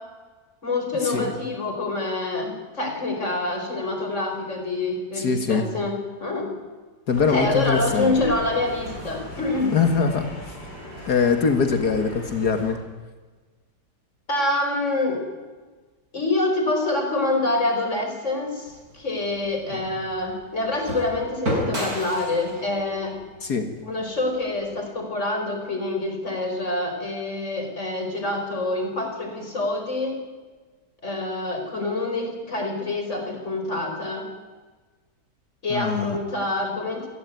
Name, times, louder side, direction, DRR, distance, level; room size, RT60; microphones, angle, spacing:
voice 1, 0.6-6.5 7.2-9.7 14.3-15.3 16.1-23.2 23.8-30.2 31.0-34.3 35.6-37.1, left 2 dB, 45° left, 4 dB, 5.0 m, -26 dB
voice 2, 5.1-5.7 7.1-8.1 9.7-10.6 11.1-12.8 19.7-19.8 23.4-23.7 35.7-36.2, left 5 dB, 70° left, 7 dB, 2.3 m, -22 dB
sound 1, 7.1-12.7, left 1 dB, 85° left, 8.2 m, -39 dB
sound 2, 18.7-24.8, equal, 60° right, 7.0 m, -33 dB
26.5 x 19.5 x 9.3 m, 1.3 s
omnidirectional pair, 1.8 m